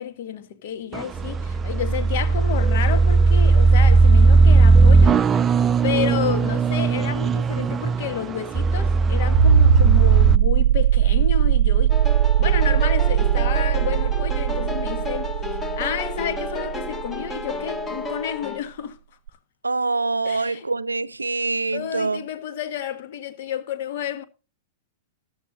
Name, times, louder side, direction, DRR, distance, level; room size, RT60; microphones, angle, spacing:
voice 1, 0.0-5.4 5.8-12.0 12.4-15.4 15.8-19.0 20.2-20.7 21.7-24.2, left 9 dB, 55° left, 1.6 m, -30 dB
sound 1, 0.9-10.4, right 4 dB, 20° right, 0.5 m, -17 dB
sound 2, 9.3-17.8 19.3-19.4, right 10 dB, 55° right, 0.8 m, -19 dB
sound 3, 11.9-18.6, left 3 dB, 15° left, 1.8 m, -31 dB
voice 2, 19.6-22.3, right 3 dB, 85° right, 0.5 m, -25 dB
14.5 x 11.0 x 2.6 m
figure-of-eight pair, 100°, 0 cm